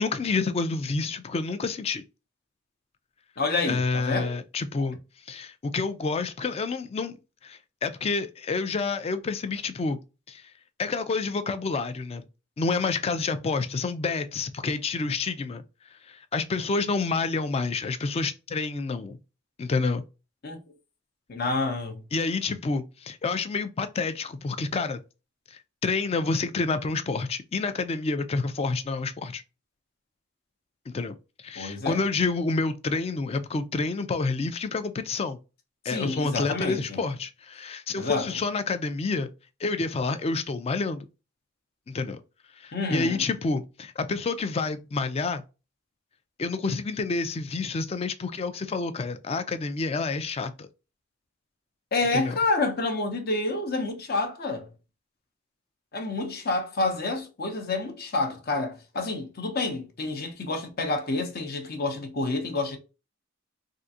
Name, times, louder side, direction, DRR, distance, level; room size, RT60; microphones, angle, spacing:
voice 1, 0.0-2.0 3.6-5.0 5.3-7.2 7.4-10.0 10.3-10.4 10.8-12.2 12.6-15.6 16.1-19.2 19.6-20.0 22.1-25.0 25.5-29.4 30.9-31.2 31.4-35.4 35.8-39.3 39.6-41.1 41.9-42.2 42.6-45.4 46.4-50.7 52.1-52.4, left 4 dB, 30° left, 0.3 m, -28 dB
voice 2, 3.4-4.3 20.4-20.6 21.3-22.1 31.6-32.0 35.9-37.0 38.0-38.4 42.7-43.2 51.9-54.7 55.9-62.8, left 3 dB, 50° left, 0.8 m, -28 dB
3.6 x 2.5 x 2.7 m
head